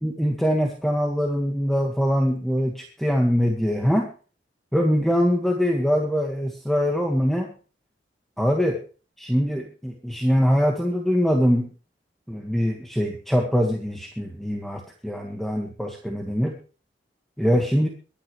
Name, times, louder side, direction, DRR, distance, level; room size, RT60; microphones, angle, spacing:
voice 1, 0.0-4.1 4.7-7.5 8.4-8.8 9.2-11.7 12.3-16.6 17.4-17.9, equal, ahead, 1 dB, 1.8 m, -23 dB
23.0 x 10.0 x 3.3 m, 0.37 s
head